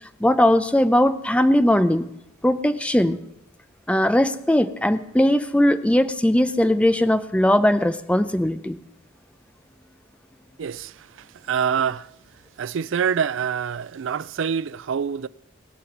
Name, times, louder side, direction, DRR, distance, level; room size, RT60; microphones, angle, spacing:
voice 1, 0.2-2.1 2.4-3.2 3.9-8.8, left 1 dB, 5° left, 0.5 m, -19 dB
voice 2, 10.6-12.1 12.6-15.3, right 7 dB, 70° right, 0.4 m, -26 dB
20.5 x 7.0 x 5.9 m
head